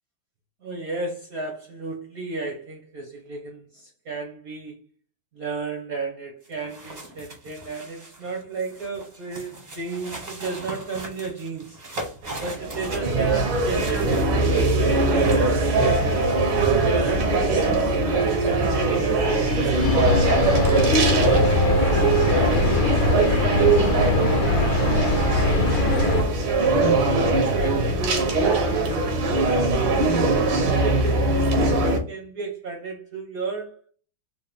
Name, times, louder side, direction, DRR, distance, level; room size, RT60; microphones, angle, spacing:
voice 1, 0.6-4.8 5.3-11.8 12.4-16.2 16.7-20.0 20.7-24.1 24.4-25.1 25.8-26.3 27.6-30.1 30.5-33.8, right 3 dB, 65° right, 0.9 m, -34 dB
sound 1, 6.4-15.5, right 2 dB, 45° right, 0.5 m, -39 dB
sound 2, 12.2-32.0, right 2 dB, 85° right, 1.7 m, -21 dB
sound 3, 19.8-26.2, left 3 dB, 70° left, 1.2 m, -22 dB
4.1 x 2.1 x 3.4 m
omnidirectional pair, 2.3 m